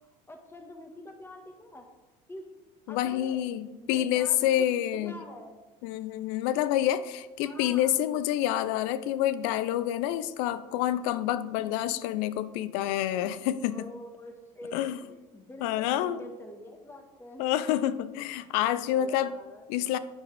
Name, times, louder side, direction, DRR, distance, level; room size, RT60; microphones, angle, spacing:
voice 1, 0.3-1.9 2.3-2.5 2.9-3.4 3.8-5.6 7.4-8.0 13.2-13.3 13.7-17.5 18.7-19.6, left 1 dB, 10° left, 3 dB, 1.4 m, -46 dB
voice 2, 2.9-5.2 5.8-13.9 14.7-15.0 15.6-16.2 17.4-19.3 19.7-20.0, left 12 dB, 70° left, 14 dB, 0.6 m, -28 dB
10.5 x 8.0 x 3.4 m, 1.2 s
hypercardioid pair, 85°, 21 cm